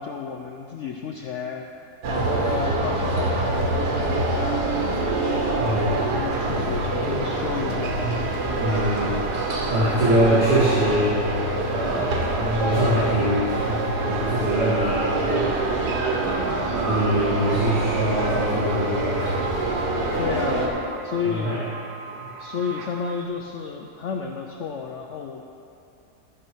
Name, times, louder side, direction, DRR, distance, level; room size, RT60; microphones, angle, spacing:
voice 1, 0.0-1.6 2.1-4.7 5.2-5.5 5.9-8.0 9.0-9.2 20.2-21.6 22.4-25.4, left 6 dB, 70° left, 3 dB, 0.7 m, -31 dB
sound 1, 2.0-20.7, right 2 dB, 90° right, 1.8 m, -25 dB
voice 2, 5.3-6.1 8.6-9.3 9.7-11.2 11.7-19.7 20.1-20.4 21.2-21.6 22.1-22.3, right 1 dB, 40° right, -10 dB, 2.2 m, -24 dB
sound 2, 5.6-23.3, right 3 dB, 60° right, 0.5 m, -39 dB
13.5 x 6.2 x 4.6 m, 2.7 s
omnidirectional pair, 1.7 m